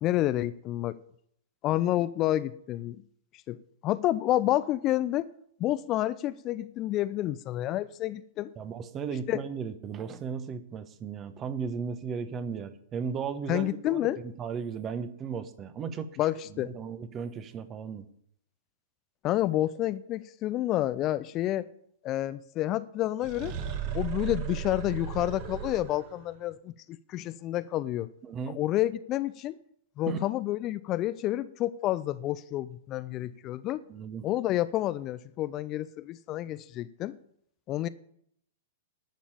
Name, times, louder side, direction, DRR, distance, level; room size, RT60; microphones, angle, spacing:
voice 1, 0.0-1.0 1.6-3.0 3.5-5.3 5.6-8.5 9.3-9.4 13.5-14.2 16.2-16.7 19.2-21.7 22.0-23.5 23.9-28.1 28.5-29.6 30.0-33.8 34.2-37.2 37.7-37.9, left 14 dB, 35° left, 0.5 m, -29 dB
voice 2, 8.6-16.1 16.5-18.1 28.2-28.6 30.1-30.2 33.9-34.2, right 6 dB, 25° right, 1.1 m, -35 dB
sound 1, 23.2-26.2, right 8 dB, 45° right, 1.7 m, -35 dB
11.5 x 7.3 x 8.5 m
figure-of-eight pair, 105°, 0 cm